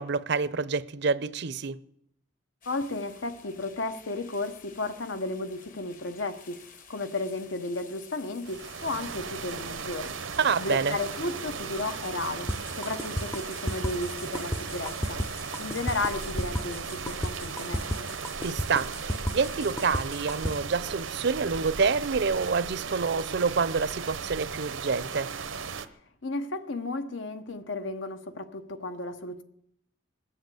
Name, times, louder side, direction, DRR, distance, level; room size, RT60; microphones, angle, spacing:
voice 1, 0.0-1.8 10.4-11.0 18.4-25.3, right 5 dB, 60° right, 0.6 m, -27 dB
sound 1, 2.6-20.1, left 6 dB, 45° left, 1.3 m, -52 dB
voice 2, 2.7-6.6 6.9-10.1 10.6-12.5 12.7-15.2 15.6-18.1 26.2-29.4, left 2 dB, 75° left, 1.1 m, -33 dB
sound 2, 8.4-25.9, right 5 dB, 90° right, 0.9 m, -37 dB
sound 3, 12.5-20.5, equal, 15° left, 0.6 m, -32 dB
20.5 x 7.9 x 7.8 m
head